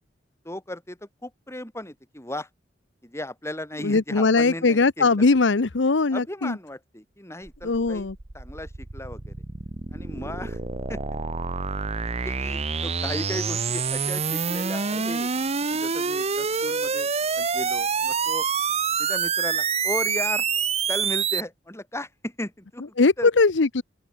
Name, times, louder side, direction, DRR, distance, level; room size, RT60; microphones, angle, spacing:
voice 1, 0.4-2.5 3.0-5.2 6.1-8.1 8.3-9.3 9.9-10.6 10.9-11.0 12.2-15.3 15.7-18.5 19.0-20.5 20.9-23.3, left 1 dB, 15° left, 7.6 m, -36 dB
voice 2, 3.8-6.6 7.6-8.1 23.0-23.8, left 3 dB, 70° left, 0.8 m, -20 dB
sound 1, 7.5-21.4, right 5 dB, 35° right, 0.9 m, -27 dB
Rain, 12.1-19.4, left 3 dB, 40° left, 7.4 m, -56 dB
open air
head